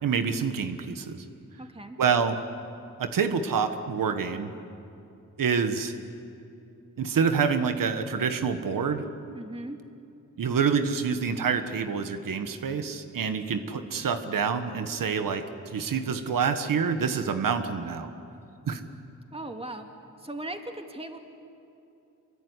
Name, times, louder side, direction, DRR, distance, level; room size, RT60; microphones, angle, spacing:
voice 1, 0.0-1.2 2.0-2.4 3.0-4.5 5.4-5.9 7.0-9.1 10.4-15.4 15.7-18.1 18.7-18.8, right 6 dB, 90° right, 8 dB, 1.5 m, -27 dB
voice 2, 1.6-2.0 9.3-9.8 19.3-19.9 20.2-21.2, right 1 dB, 20° right, 4 dB, 2.4 m, -38 dB
26.5 x 22.5 x 9.8 m, 2.7 s
wide cardioid pair, 90°, 32 cm